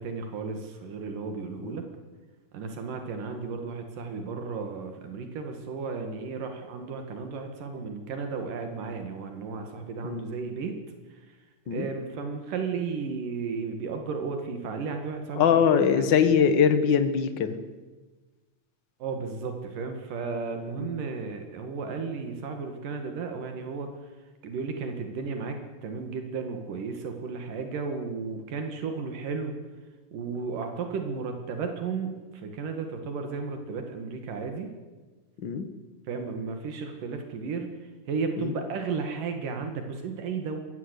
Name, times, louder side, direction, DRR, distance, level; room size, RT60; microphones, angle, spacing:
voice 1, 0.0-1.9 2.5-10.8 11.1-11.4 11.7-16.3 19.0-24.1 24.4-29.5 30.1-34.7 36.1-37.7 38.1-40.6, right 5 dB, 80° right, 5 dB, 3.5 m, -34 dB
voice 2, 15.3-17.6 20.8-20.9 35.4-35.7 38.4-38.5, left 7 dB, 45° left, 10 dB, 1.6 m, -22 dB
22.0 x 17.5 x 8.3 m, 1.3 s
omnidirectional pair, 3.8 m